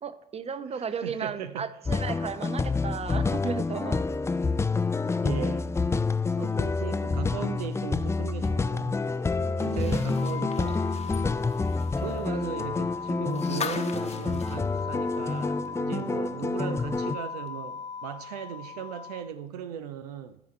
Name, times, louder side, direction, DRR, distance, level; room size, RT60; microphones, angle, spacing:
voice 1, 0.0-4.0 9.4-10.2, right 6 dB, 30° right, 0.7 m, -35 dB
voice 2, 0.7-1.8 5.2-5.7 6.4-9.0 9.4-10.9 12.0-20.4, right 9 dB, 75° right, 0.4 m, -38 dB
sound 1, 1.8-17.2, left 4 dB, 15° left, 0.3 m, -28 dB
sound 2, 9.6-15.7 16.0-16.1 17.5-17.6, left 5 dB, 35° left, 1.0 m, -40 dB
sound 3, 10.2-19.2, left 6 dB, 60° left, 0.8 m, -40 dB
14.0 x 4.8 x 4.3 m
figure-of-eight pair, 40°, 20 cm